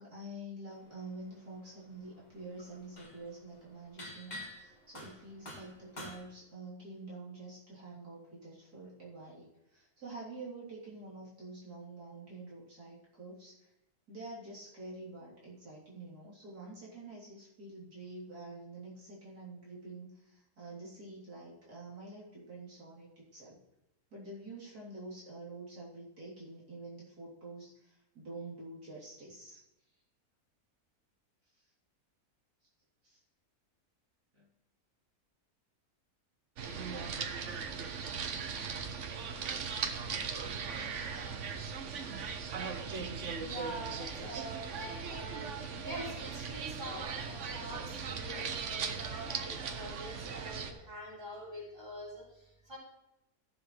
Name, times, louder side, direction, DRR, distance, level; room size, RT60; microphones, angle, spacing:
voice 1, 0.0-13.7 14.1-23.6 24.1-29.6 31.5-31.6 33.0-33.2 34.3-34.5, right 2 dB, 80° right, -7 dB, 4.0 m, -47 dB
sound 1, 1.1-1.6 1.9-6.2, left 1 dB, 30° left, 2.0 m, -47 dB
sound 2, 36.6-50.7, right 6 dB, 55° right, 1.1 m, -38 dB
voice 2, 43.0-45.5 45.8-52.8, right 1 dB, 15° right, -5 dB, 3.5 m, -45 dB
14.5 x 7.0 x 3.2 m, 0.90 s
omnidirectional pair, 1.6 m